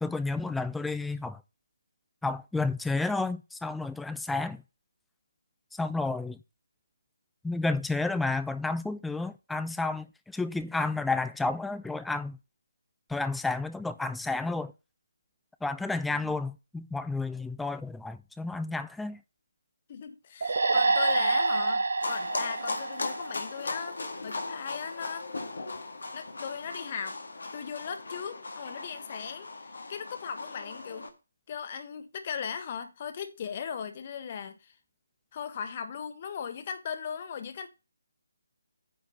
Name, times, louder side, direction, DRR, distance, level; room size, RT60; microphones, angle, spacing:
voice 1, 0.0-1.4 2.2-4.6 5.7-6.4 7.4-12.4 13.1-14.7 15.6-19.2, left 3 dB, 5° left, 0.5 m, -31 dB
voice 2, 19.9-25.3 26.1-27.2 27.5-31.1 31.5-34.7 35.3-37.7, left 7 dB, 35° left, 1.3 m, -38 dB
sound 1, 20.4-23.9, right 3 dB, 55° right, 0.9 m, -27 dB
sound 2, 22.0-31.1, left 3 dB, 65° left, 1.9 m, -38 dB
9.6 x 4.5 x 5.7 m
figure-of-eight pair, 145°, 0 cm